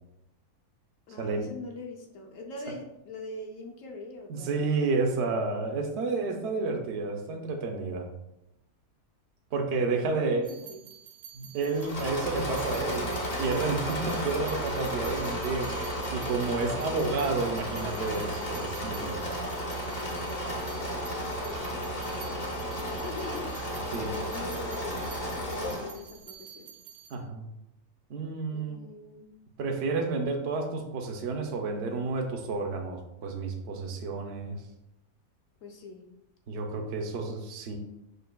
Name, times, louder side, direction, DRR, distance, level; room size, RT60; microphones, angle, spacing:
voice 1, 1.1-4.6 10.1-10.8 21.3-26.7 28.5-29.4 35.6-36.0, left 2 dB, 65° left, 1 dB, 1.0 m, -43 dB
voice 2, 4.3-8.1 9.5-10.5 11.3-15.7 16.1-19.4 23.9-24.1 27.1-27.5 28.1-28.8 29.6-34.6 36.5-37.8, right 3 dB, 70° right, 3 dB, 0.6 m, -30 dB
sound 1, 10.4-27.2, right 9 dB, 85° right, 1.2 m, -50 dB
Engine / Mechanisms, 11.7-26.0, equal, 40° left, 0.6 m, -33 dB
6.3 x 2.5 x 2.2 m, 0.87 s
omnidirectional pair, 1.6 m